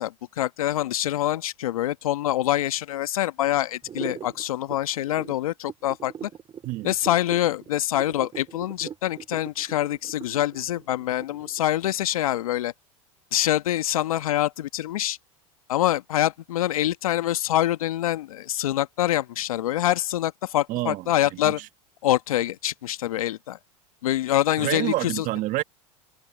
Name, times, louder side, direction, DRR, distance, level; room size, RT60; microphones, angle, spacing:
voice 1, 0.0-6.3 6.8-12.7 13.3-15.2 15.7-21.6 22.0-23.6 24.0-25.2, left 13 dB, 80° left, 1.4 m, -25 dB
sound 1, 3.8-11.6, right 8 dB, 30° right, 2.0 m, -40 dB
voice 2, 20.7-21.7 24.6-25.6, right 17 dB, 50° right, 1.8 m, -28 dB
hypercardioid pair, 95°, 18 cm